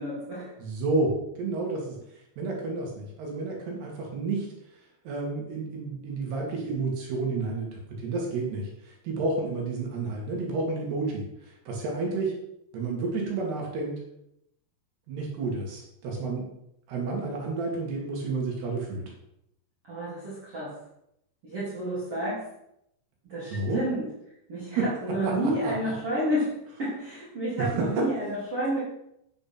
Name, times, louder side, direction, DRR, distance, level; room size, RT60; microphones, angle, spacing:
voice 1, 0.0-0.6 19.8-20.8 21.4-22.5 23.2-24.1 24.5-28.8, right 1 dB, 35° right, -9 dB, 3.7 m, -30 dB
voice 2, 0.6-2.0 2.4-4.5 5.1-12.4 12.7-14.0 15.1-16.5 16.9-19.0 23.5-23.8 24.8-24.9 25.2-25.3 25.6-25.7 27.6-28.0, right 3 dB, 70° right, -1 dB, 4.2 m, -30 dB
9.1 x 7.8 x 6.0 m, 0.78 s
omnidirectional pair, 5.0 m